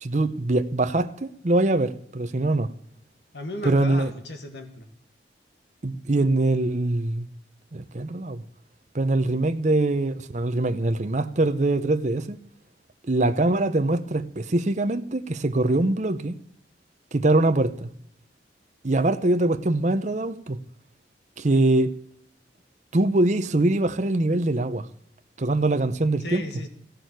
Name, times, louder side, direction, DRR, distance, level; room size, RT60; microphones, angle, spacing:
voice 1, 0.0-2.7 3.6-4.1 5.8-7.3 7.7-8.4 8.9-12.4 13.1-16.3 17.1-17.9 18.8-20.6 21.4-21.9 22.9-24.9 25.4-26.4, right 2 dB, 40° right, 0.7 m, -23 dB
voice 2, 3.3-4.9 26.2-26.7, left 1 dB, 70° left, 2.0 m, -35 dB
16.0 x 6.9 x 9.1 m
head